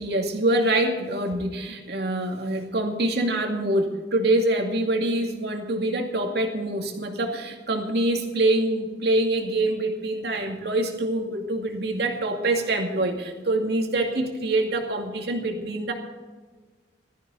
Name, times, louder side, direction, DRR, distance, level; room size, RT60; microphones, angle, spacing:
voice 1, 0.0-15.9, right 1 dB, 65° right, 2 dB, 2.3 m, -25 dB
16.5 x 13.5 x 4.1 m, 1.3 s
head